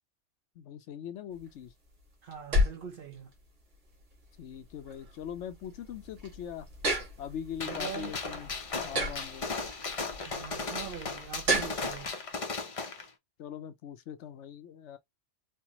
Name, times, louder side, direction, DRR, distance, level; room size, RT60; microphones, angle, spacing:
voice 1, 0.6-1.7 4.4-6.7 7.2-8.5 8.8-9.5 13.4-15.0, left 9 dB, 70° left, 0.9 m, -41 dB
sound 1, 1.3-12.1, equal, 70° right, 1.8 m, -35 dB
voice 2, 2.2-3.3 7.7-8.1 10.2-12.2, right 7 dB, 50° right, 0.8 m, -42 dB
Gunshot gunfire, 7.6-13.1, left 4 dB, 35° left, 0.6 m, -36 dB
4.4 x 2.2 x 3.0 m
omnidirectional pair, 1.3 m